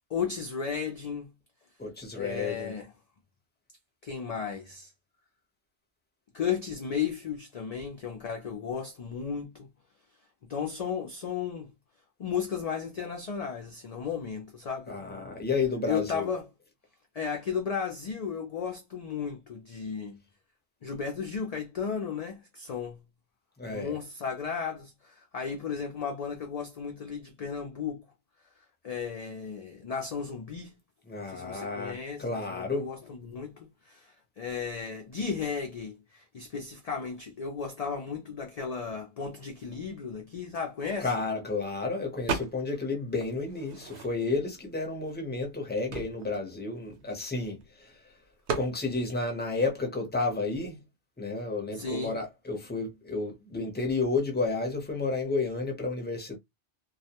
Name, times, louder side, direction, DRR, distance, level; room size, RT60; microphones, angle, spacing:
voice 1, 0.1-1.3 2.1-2.9 4.0-4.9 6.3-9.7 10.5-11.7 12.2-15.0 15.9-16.5 17.1-20.2 20.8-23.0 23.7-28.0 28.8-30.8 31.2-41.1 51.7-52.2, left 6 dB, 55° left, 0.4 m, -34 dB
voice 2, 1.8-2.7 14.9-16.3 23.6-24.0 31.1-32.9 41.0-47.9 48.5-50.8 51.2-56.4, left 3 dB, 10° left, 0.6 m, -31 dB
sound 1, 42.3-42.9 43.2-44.4 45.1-45.2 45.4-47.6 48.5-48.8, right 5 dB, 75° right, 0.9 m, -35 dB
2.3 x 2.1 x 2.8 m
omnidirectional pair, 1.1 m